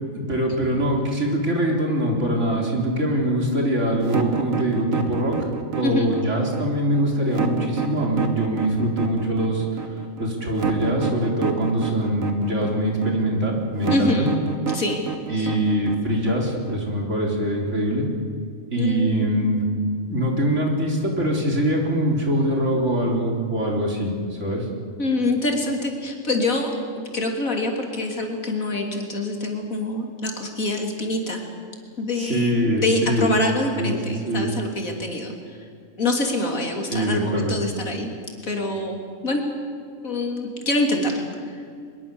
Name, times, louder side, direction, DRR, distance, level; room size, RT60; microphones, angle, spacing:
voice 1, 0.1-5.4 5.7-14.3 15.3-18.1 18.7-19.7 20.1-24.7 32.2-33.3 33.8-34.0 34.2-34.5 36.9-37.6, right 1 dB, 60° right, 0 dB, 4.2 m, -23 dB
sound 1, 4.0-16.9, right 7 dB, 75° right, 2.0 m, -29 dB
voice 2, 13.9-14.3 14.7-15.0 15.3-15.5 18.8-19.3 25.0-31.4 32.0-35.3 36.0-38.1 38.4-39.4 40.0-41.6, left 2 dB, 80° left, 2 dB, 3.6 m, -25 dB
23.5 x 22.5 x 7.1 m, 2.2 s
omnidirectional pair, 1.4 m